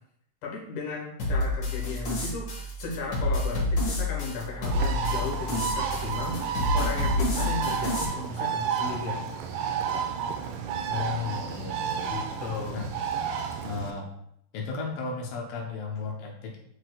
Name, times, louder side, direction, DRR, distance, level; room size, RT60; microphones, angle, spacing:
voice 1, 0.4-2.5 2.8-9.3 12.1-12.8, left 3 dB, 65° left, -3 dB, 2.7 m, -35 dB
sound 1, 1.2-8.0, left 2 dB, 45° left, 1.7 m, -29 dB
Bird, 4.6-13.9, right 7 dB, 85° right, 2.2 m, -31 dB
voice 2, 10.9-12.2 12.7-12.9 13.6-14.1 14.5-16.6, left 5 dB, 90° left, 0 dB, 2.6 m, -34 dB
9.8 x 4.6 x 2.3 m, 0.72 s
omnidirectional pair, 3.9 m